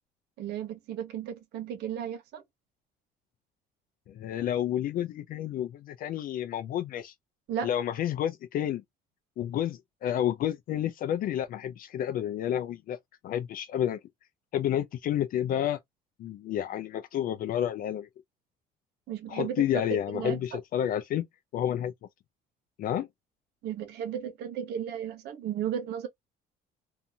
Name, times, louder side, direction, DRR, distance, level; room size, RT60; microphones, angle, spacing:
voice 1, 0.4-2.4 7.5-7.7 19.1-19.6 20.1-20.6 23.6-26.1, right 9 dB, 80° right, 0.9 m, -34 dB
voice 2, 4.1-7.1 7.6-8.8 9.4-13.0 13.2-14.0 14.5-15.8 16.2-18.1 19.3-21.3 21.5-21.9 22.8-23.1, left 10 dB, 55° left, 0.4 m, -30 dB
2.6 x 2.4 x 2.7 m
cardioid pair, 110°, 17 cm